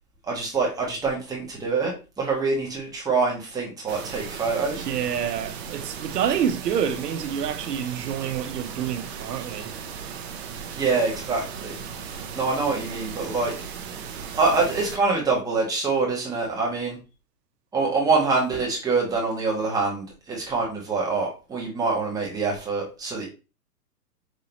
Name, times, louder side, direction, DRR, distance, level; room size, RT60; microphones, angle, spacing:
voice 1, 0.2-4.9 10.7-11.8 12.3-13.5 14.3-17.0 17.7-23.3, right 4 dB, 10° right, 1.1 m, -25 dB
sound 1, 3.9-15.0, right 7 dB, 40° right, 0.7 m, -37 dB
voice 2, 4.9-9.7, right 8 dB, 75° right, 0.9 m, -27 dB
5.3 x 2.8 x 2.9 m
hypercardioid pair, 145°, 48 cm